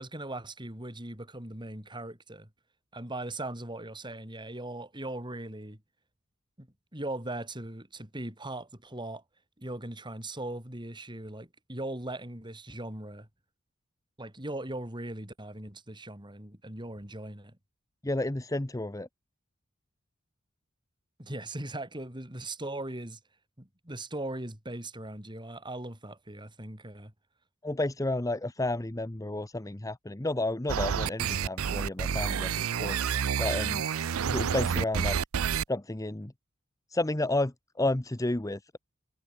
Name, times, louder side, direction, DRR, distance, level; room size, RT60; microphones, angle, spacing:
voice 1, 0.0-2.5 2.9-5.8 6.6-9.2 9.6-13.3 14.2-17.6 21.2-23.2 23.6-27.1, right 1 dB, 20° right, 4.1 m, -39 dB
voice 2, 18.0-19.1 27.6-33.0 33.4-33.8 34.3-35.2 35.7-36.3 36.9-38.8, left 2 dB, 15° left, 0.9 m, -31 dB
sound 1, 30.7-35.6, right 7 dB, 85° right, 0.5 m, -29 dB
head